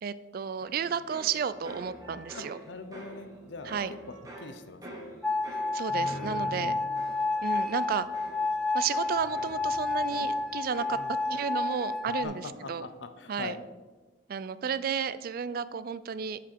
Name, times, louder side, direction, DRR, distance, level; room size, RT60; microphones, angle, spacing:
voice 1, 0.0-2.6 3.7-3.9 5.7-6.7 7.4-8.1 8.7-11.0 11.3-12.9 13.3-13.5 14.3-16.4, right 6 dB, 50° right, 15 dB, 0.3 m, -32 dB
sound 1, 0.6-12.2 12.5-13.0, equal, 20° right, 1.5 m, -46 dB
voice 2, 2.3-4.0 4.4-5.2 6.6-6.8 10.9-11.1 12.0-13.6, left 3 dB, 75° left, 9 dB, 0.7 m, -42 dB
sound 2, 5.2-12.3, left 3 dB, 5° left, 0.5 m, -30 dB
8.7 x 5.1 x 4.5 m, 1.2 s
head